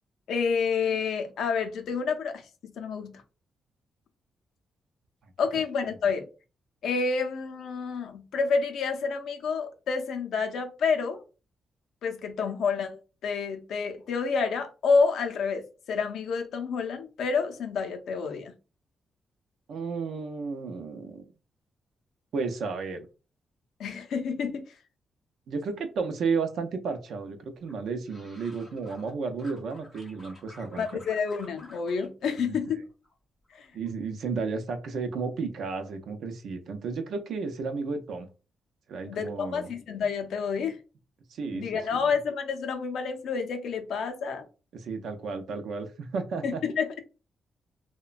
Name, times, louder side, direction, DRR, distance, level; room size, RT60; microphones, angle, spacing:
voice 1, 0.3-3.1 5.4-6.3 6.8-11.2 12.0-18.5 23.8-24.7 30.8-32.8 33.5-33.7 39.0-40.8 41.5-44.5 46.4-47.0, left 5 dB, 70° left, 0.4 m, -29 dB
voice 2, 19.7-21.3 22.3-23.1 25.5-30.9 32.4-32.6 33.7-38.3 38.9-39.7 41.3-42.1 44.7-46.6, right 4 dB, 65° right, 0.5 m, -33 dB
sound 1, 27.6-29.1 29.4-32.1 32.4-33.1 33.4-33.9, left 2 dB, 15° left, 1.2 m, -52 dB
2.9 x 2.1 x 2.4 m
wide cardioid pair, 180°, 0 cm